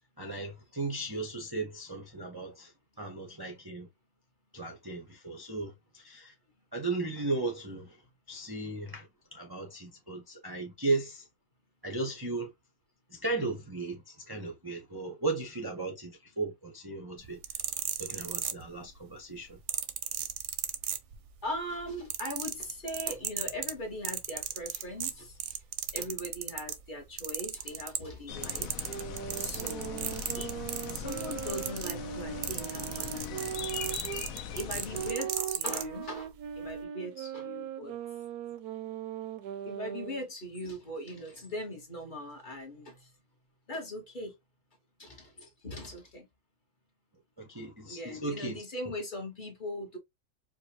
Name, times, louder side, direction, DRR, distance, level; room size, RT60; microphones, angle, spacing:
voice 1, 0.2-3.9 4.5-6.3 6.7-8.0 8.3-11.3 11.8-12.5 13.1-17.4 18.0-19.6 47.4-48.6, right 3 dB, 25° right, 0.5 m, -36 dB
sound 1, 17.3-19.0 19.7-21.4 21.8-26.8 27.2-28.2 28.4-35.9 36.6-36.8, right 9 dB, 65° right, 0.8 m, -35 dB
voice 2, 21.4-25.6 25.9-29.0 29.4-30.6 30.9-33.5 34.5-36.3 36.6-37.9 39.6-43.1 43.7-44.4 45.0-46.3 47.9-50.0, left 1 dB, 35° left, 1.1 m, -40 dB
sound 2, 28.3-35.1, left 7 dB, 70° left, 1.0 m, -41 dB
sound 3, 28.8-34.3 34.9-40.3, right 9 dB, 85° right, 1.1 m, -39 dB
4.8 x 2.2 x 2.8 m
omnidirectional pair, 1.6 m